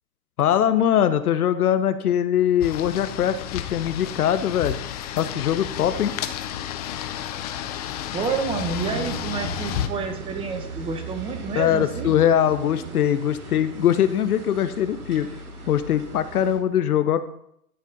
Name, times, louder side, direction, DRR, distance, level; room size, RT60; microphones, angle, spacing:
voice 1, 0.4-4.8 5.1-6.2 11.6-15.3 15.7-17.2, left 10 dB, 80° left, 11 dB, 0.8 m, -22 dB
sound 1, 2.6-9.9, left 11 dB, 30° left, 0.5 m, -32 dB
voice 2, 8.1-12.2, right 4 dB, 10° right, 6 dB, 0.8 m, -29 dB
sound 2, 8.4-16.6, right 5 dB, 75° right, 3.1 m, -37 dB
11.5 x 4.2 x 5.2 m, 0.74 s
hypercardioid pair, 135°, 44 cm